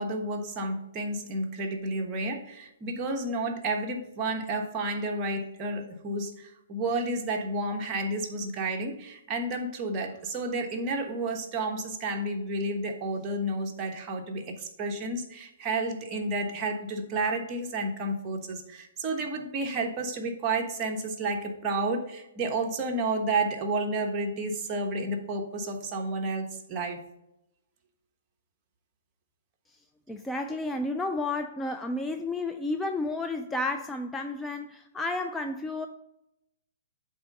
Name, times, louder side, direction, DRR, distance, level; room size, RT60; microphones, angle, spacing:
voice 1, 0.0-27.0, right 2 dB, 25° right, 2 dB, 1.1 m, -31 dB
voice 2, 30.1-35.9, left 2 dB, 10° left, 5 dB, 0.4 m, -31 dB
8.0 x 3.5 x 5.4 m, 0.87 s
hypercardioid pair, 135°, 0 cm